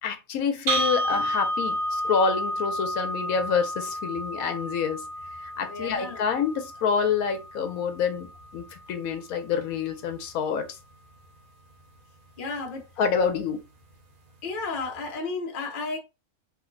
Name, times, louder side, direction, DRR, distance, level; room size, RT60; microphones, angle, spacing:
voice 1, 0.0-5.0 5.6-8.3 8.5-10.7 13.0-13.6, left 6 dB, 75° left, 1.1 m, -27 dB
sound 1, 0.7-8.7, equal, 80° right, 1.3 m, -31 dB
voice 2, 5.6-6.2 12.4-12.9 14.4-16.0, left 3 dB, 45° left, 0.8 m, -33 dB
3.0 x 2.1 x 3.7 m
omnidirectional pair, 1.5 m